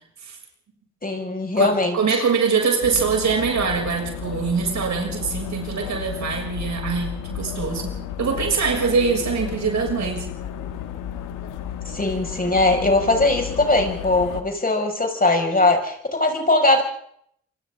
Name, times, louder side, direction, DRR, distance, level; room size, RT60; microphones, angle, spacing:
voice 1, 1.0-2.2 11.9-16.8, left 2 dB, 30° left, 3 dB, 6.0 m, -20 dB
voice 2, 1.6-7.9 8.2-10.2, right 5 dB, 65° right, 1 dB, 6.7 m, -23 dB
sound 1, 2.8-14.4, left 9 dB, 80° left, 1.6 m, -33 dB
27.0 x 25.5 x 3.8 m, 0.67 s
hypercardioid pair, 45°, 31 cm